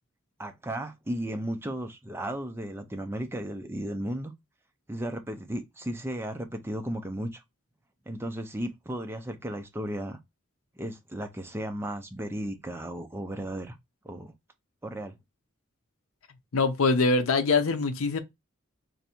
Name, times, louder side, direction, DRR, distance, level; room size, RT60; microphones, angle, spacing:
voice 1, 0.4-4.3 4.9-7.4 8.1-10.2 10.8-13.8 14.0-14.3 14.8-15.1, right 1 dB, 10° right, 0.4 m, -35 dB
voice 2, 16.5-18.2, left 3 dB, 80° left, 0.6 m, -23 dB
3.3 x 2.6 x 4.3 m
head